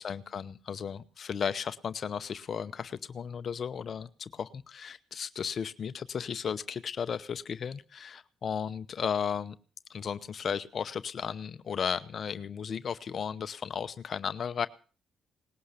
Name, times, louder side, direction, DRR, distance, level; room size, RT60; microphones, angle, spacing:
voice 1, 0.0-9.6 9.9-14.7, left 7 dB, 50° left, 12 dB, 0.8 m, -35 dB
19.5 x 11.0 x 6.7 m, 0.40 s
cardioid pair, 90°, 0 cm